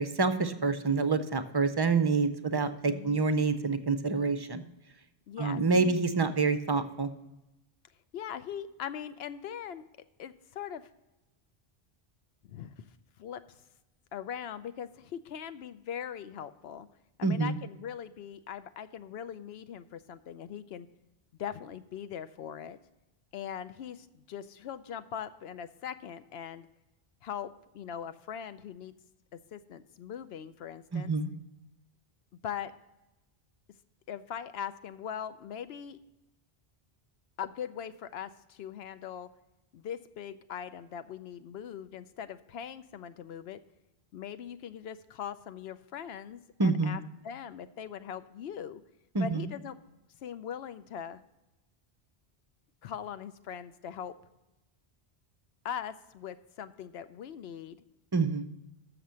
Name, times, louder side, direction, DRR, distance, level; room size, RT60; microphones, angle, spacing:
voice 1, 0.0-4.6 5.4-7.1 17.2-17.6 30.9-31.3 46.6-47.0 49.1-49.5 58.1-58.4, right 4 dB, 35° right, 11 dB, 0.4 m, -27 dB
voice 2, 2.8-3.3 5.3-6.0 8.1-9.8 10.2-10.9 12.4-12.7 13.2-13.4 14.1-16.9 17.2-20.9 21.4-22.8 23.3-26.7 27.2-28.9 29.3-31.1 32.4-32.7 34.1-36.0 37.4-39.3 39.7-43.6 44.1-48.8 49.2-49.8 50.2-51.2 52.8-54.1 55.6-57.8, left 8 dB, 80° left, 13 dB, 0.8 m, -41 dB
6.9 x 6.7 x 7.5 m, 0.96 s
omnidirectional pair, 1.0 m